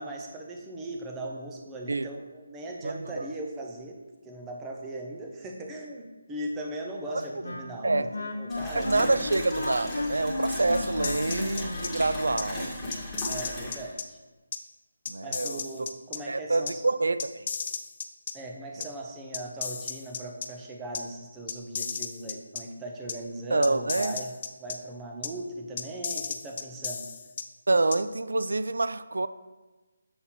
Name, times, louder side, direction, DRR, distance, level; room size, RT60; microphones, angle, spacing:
voice 1, 0.0-4.0 4.2-9.2 13.3-14.2 15.2-16.8 18.3-24.3 24.6-27.0, right 1 dB, 10° right, 0.9 m, -39 dB
voice 2, 2.8-3.3 7.8-8.1 8.7-12.7 15.1-15.6 16.3-17.5 23.5-24.2 27.7-29.3, right 2 dB, 75° right, 0.4 m, -27 dB
Wind instrument woodwind instrument, 7.1-12.5, left 2 dB, 80° left, 0.8 m, -35 dB
sound 1, 8.5-13.9, left 1 dB, 5° left, 1.7 m, -36 dB
sound 2, 11.0-11.9 12.4-12.5 12.9-14.0 14.5-14.6 15.1-16.2 16.7-16.8 17.2-18.3 18.8-18.9 19.3-20.5 20.9-21.0 21.5-22.6 23.1-23.2 23.6-24.8 25.2-25.3 25.8-27.4 27.9-28.0, left 6 dB, 40° left, 0.5 m, -34 dB
7.4 x 4.2 x 4.2 m
figure-of-eight pair, 160°, 0 cm